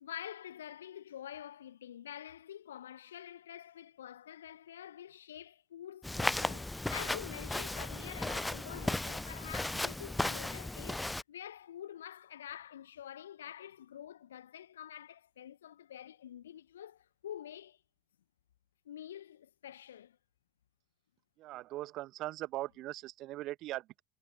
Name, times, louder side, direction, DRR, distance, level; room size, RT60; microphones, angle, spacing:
voice 1, 0.0-17.8 18.8-20.2, left 10 dB, 70° left, 1.0 m, -47 dB
Walk footsteps, 6.0-11.2, left 2 dB, 5° left, 0.3 m, -35 dB
voice 2, 21.4-24.0, right 16 dB, 45° right, 1.1 m, -40 dB
figure-of-eight pair, 75°, 0 cm